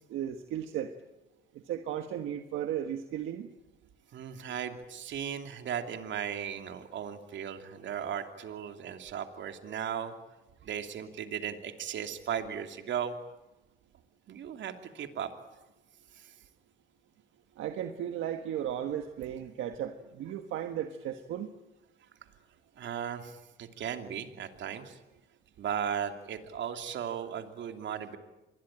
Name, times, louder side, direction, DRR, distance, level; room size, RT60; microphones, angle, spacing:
voice 1, 0.1-0.9 1.7-3.5 17.6-21.5, right 10 dB, 85° right, 7 dB, 1.5 m, -35 dB
voice 2, 4.1-10.1 10.6-13.1 14.3-15.3 16.1-16.3 22.8-25.0 25.6-28.2, right 8 dB, 70° right, 7 dB, 2.8 m, -36 dB
26.5 x 21.5 x 9.0 m, 1.0 s
cardioid pair, 90°, 20 cm